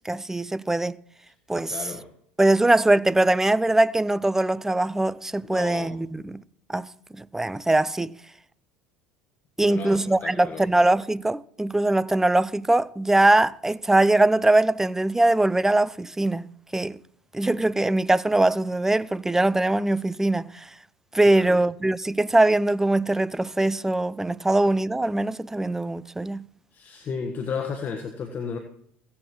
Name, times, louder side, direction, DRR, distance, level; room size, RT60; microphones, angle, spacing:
voice 1, 0.0-1.0 1.5-1.8 2.4-6.4 6.7-6.9 7.1-8.1 9.6-17.0 17.3-20.7 21.1-26.5, right 2 dB, 10° right, 0.4 m, -22 dB
voice 2, 1.5-2.1 5.4-6.0 9.6-10.6 21.3-21.6 26.7-28.6, left 5 dB, 40° left, 1.3 m, -33 dB
16.0 x 8.4 x 3.1 m
hypercardioid pair, 75°, 5 cm